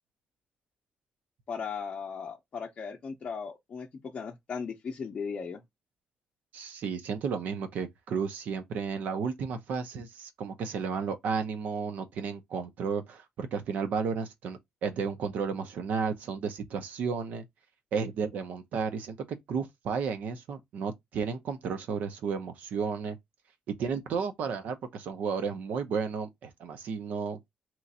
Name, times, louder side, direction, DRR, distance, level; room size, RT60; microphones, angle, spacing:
voice 1, 1.5-5.6, left 6 dB, 35° left, 0.6 m, -37 dB
voice 2, 6.5-17.4 17.9-19.2 19.5-23.2 23.8-27.4, right 6 dB, 70° right, 0.8 m, -33 dB
3.0 x 2.5 x 4.0 m
cardioid pair, 175°, 3 cm